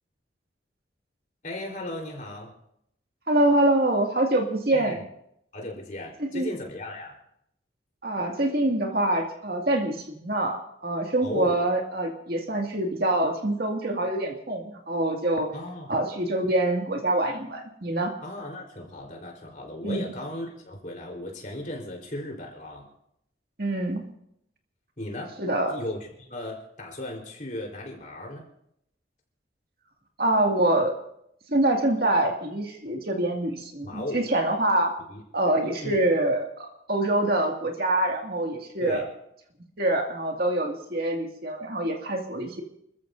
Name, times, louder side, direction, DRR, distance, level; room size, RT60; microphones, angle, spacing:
voice 1, 1.4-2.5 4.7-5.0 5.5-7.2 11.2-11.6 15.5-15.9 18.2-22.9 25.0-25.3 25.7-28.4 33.8-34.3 35.1-35.5 35.8-36.0 38.8-39.1, left 1 dB, 45° left, -1 dB, 4.0 m, -36 dB
voice 2, 3.3-5.0 6.3-6.5 8.0-15.5 15.9-18.1 19.8-20.0 23.6-24.0 25.4-25.7 30.2-30.9 31.5-34.9 35.3-39.0 39.8-42.6, right 1 dB, 55° right, 1 dB, 2.2 m, -25 dB
29.0 x 14.0 x 2.7 m, 0.75 s
head